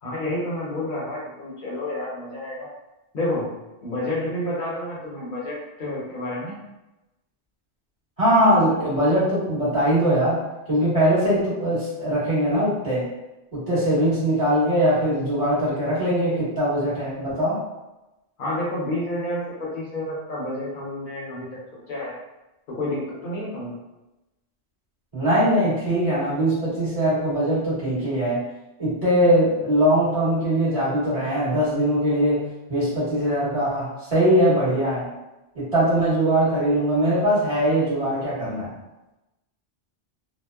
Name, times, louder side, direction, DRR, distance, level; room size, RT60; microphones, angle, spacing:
voice 1, 0.0-2.7 3.1-6.6 18.4-21.5 21.7-22.2 22.7-23.8, left 1 dB, 55° left, -5 dB, 0.8 m, -29 dB
voice 2, 8.2-10.4 10.7-13.0 13.5-17.6 25.1-28.4 28.8-32.4 32.7-35.1 35.5-38.7, equal, 30° right, -11 dB, 1.4 m, -21 dB
2.8 x 2.1 x 2.2 m, 0.98 s
omnidirectional pair, 1.1 m